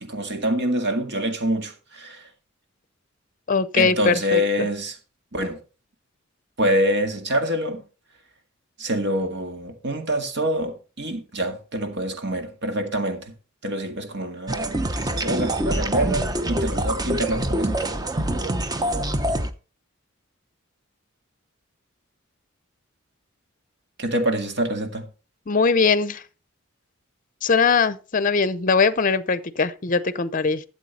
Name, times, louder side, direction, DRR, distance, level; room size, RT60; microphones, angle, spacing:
voice 1, 0.0-2.2 3.8-5.0 5.3-5.6 6.6-7.8 8.8-13.3 13.6-17.7 24.0-25.1, equal, 55° right, 2.0 m, -26 dB
voice 2, 3.5-4.4 25.5-26.2 27.4-30.6, left 5 dB, 40° left, 0.6 m, -21 dB
sound 1, 14.5-19.5, right 1 dB, 20° right, 0.8 m, -25 dB
12.5 x 7.7 x 4.2 m
head